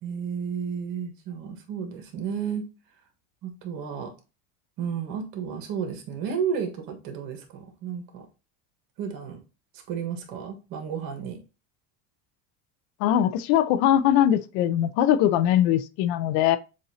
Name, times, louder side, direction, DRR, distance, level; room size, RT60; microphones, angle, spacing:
voice 1, 0.0-2.7 3.4-4.1 4.8-8.3 9.0-9.4 9.9-11.4, right 7 dB, 60° right, 1.5 m, -32 dB
voice 2, 13.0-16.6, left 11 dB, 70° left, 0.6 m, -21 dB
7.1 x 2.6 x 2.8 m
supercardioid pair, 125°, 39 cm